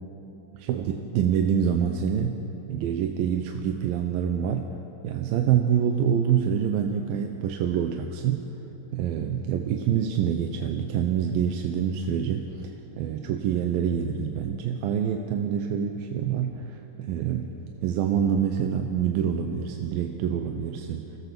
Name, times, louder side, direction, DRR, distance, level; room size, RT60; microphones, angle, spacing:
voice 1, 0.5-2.4 2.7-4.7 5.0-8.5 8.9-17.5 17.8-21.2, right 8 dB, 90° right, 4 dB, 2.7 m, -26 dB
24.5 x 16.5 x 6.9 m, 3.0 s
omnidirectional pair, 4.0 m